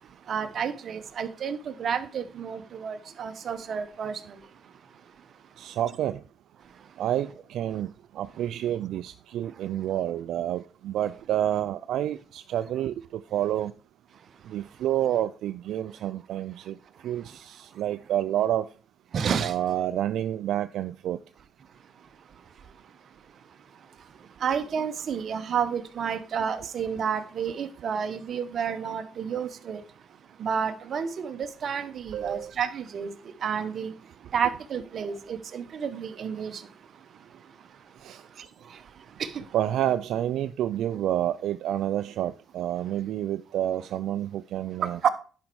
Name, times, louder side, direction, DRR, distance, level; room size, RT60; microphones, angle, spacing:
voice 1, 0.3-4.2 19.1-19.5 24.4-29.8 30.4-33.1 33.4-33.9 34.3-36.6 39.2-39.3 45.0-45.1, right 7 dB, 55° right, 1.0 m, -30 dB
voice 2, 5.6-6.2 7.0-13.7 14.5-16.8 17.0-18.7 19.4-21.2 32.1-32.5 38.0-38.2 39.5-45.0, right 11 dB, 80° right, 0.3 m, -29 dB
11.0 x 5.2 x 4.7 m
cardioid pair, 90°, 0 cm